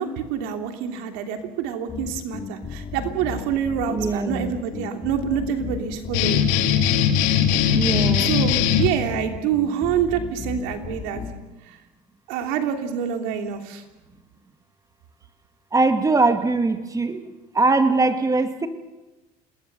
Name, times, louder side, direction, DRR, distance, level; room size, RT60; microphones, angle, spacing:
voice 1, 0.0-6.5 8.2-11.2 11.7-11.8 12.3-13.8, right 8 dB, 80° right, 5 dB, 3.1 m, -26 dB
sound 1, 1.9-11.4, left 6 dB, 35° left, 2.8 m, -35 dB
voice 2, 3.9-4.6 7.7-8.3 15.7-18.7, right 3 dB, 15° right, 8 dB, 2.1 m, -21 dB
sound 2, 6.1-8.9, left 8 dB, 80° left, 2.7 m, -20 dB
27.0 x 20.5 x 6.9 m, 1.1 s
supercardioid pair, 115°, 19 cm